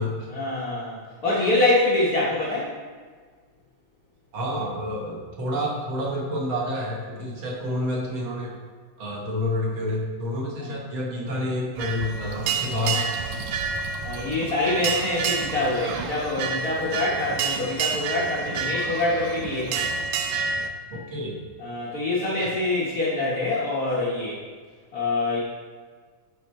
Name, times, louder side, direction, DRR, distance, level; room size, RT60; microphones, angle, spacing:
voice 1, 0.3-2.7 10.6-10.8 12.7-13.1 14.0-19.9 21.6-24.4 24.9-25.4, left 2 dB, 80° left, -8 dB, 0.8 m, -25 dB
voice 2, 4.3-8.5 9.0-13.4 20.9-21.4 22.4-22.5, left 1 dB, 50° right, -2 dB, 1.7 m, -29 dB
sound 1, 11.8-20.7, right 5 dB, 80° right, 1.8 m, -29 dB
8.0 x 5.1 x 4.2 m, 1.5 s
omnidirectional pair, 3.6 m